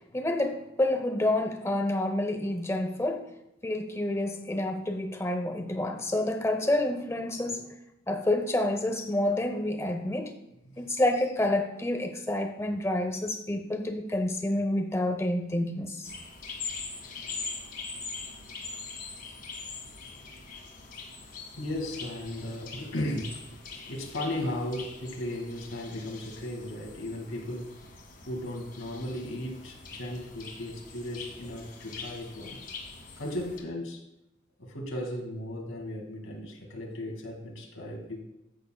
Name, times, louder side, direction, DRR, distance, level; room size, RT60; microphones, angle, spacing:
voice 1, 0.0-3.3 3.6-7.7 8.1-10.3 10.8-16.1, left 1 dB, 15° left, 6 dB, 0.7 m, -28 dB
sound 1, 16.0-33.6, left 4 dB, 45° left, 2.0 m, -43 dB
voice 2, 21.6-23.6 23.9-27.7 28.3-32.7 33.2-34.0 34.6-38.2, left 1 dB, 80° left, 0 dB, 2.2 m, -36 dB
13.5 x 8.3 x 2.3 m, 0.87 s
head